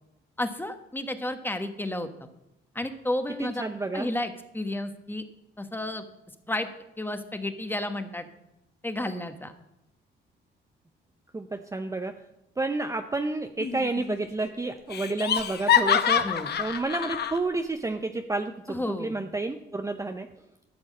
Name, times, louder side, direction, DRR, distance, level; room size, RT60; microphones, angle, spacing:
voice 1, 0.4-2.1 2.7-3.6 3.9-5.2 5.6-6.1 6.5-6.7 7.0-8.3 8.8-9.5 16.1-16.5 18.7-19.2, left 1 dB, 10° left, 8 dB, 1.2 m, -32 dB
voice 2, 3.4-4.1 11.3-12.1 12.6-16.3 16.6-20.3, right 3 dB, 15° right, 6 dB, 0.7 m, -30 dB
Laughter, 13.6-14.1 14.4-14.5 14.9-17.4, left 9 dB, 55° left, 1.0 m, -25 dB
13.0 x 6.2 x 7.4 m, 0.85 s
cardioid pair, 90°, 20 cm